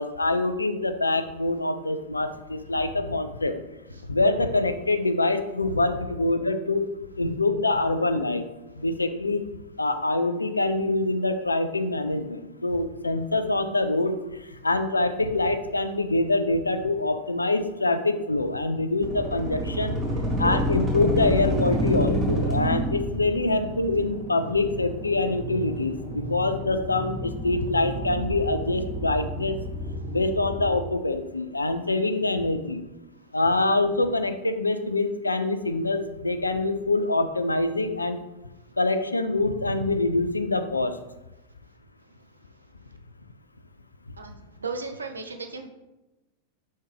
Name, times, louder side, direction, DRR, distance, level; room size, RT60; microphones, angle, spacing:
voice 1, 0.0-3.6 4.1-6.9 7.2-8.4 8.8-9.4 9.8-14.1 14.6-20.0 20.4-29.6 30.1-32.8 33.3-38.2 38.8-41.0, left 2 dB, 80° left, 9 dB, 0.3 m, -25 dB
sound 1, 19.0-30.8, equal, 20° right, 1.5 m, -29 dB
voice 2, 44.2-45.7, right 4 dB, 75° right, 6 dB, 0.4 m, -35 dB
4.2 x 3.5 x 3.3 m, 0.99 s
figure-of-eight pair, 90°, 0 cm